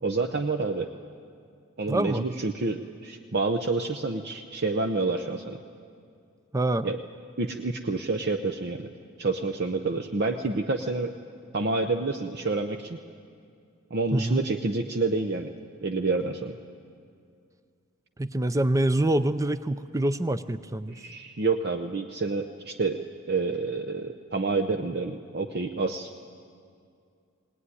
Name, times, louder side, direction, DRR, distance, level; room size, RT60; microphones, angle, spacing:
voice 1, 0.0-0.9 1.8-5.6 6.8-7.0 7.4-8.9 9.2-11.1 11.5-13.0 13.9-15.5 15.8-16.6 20.9-26.1, right 3 dB, 50° right, 5 dB, 0.8 m, -28 dB
voice 2, 1.9-2.2 6.5-6.9 14.1-14.5 18.2-21.0, right 1 dB, 15° right, 14 dB, 0.5 m, -25 dB
19.5 x 19.0 x 9.7 m, 2.3 s
head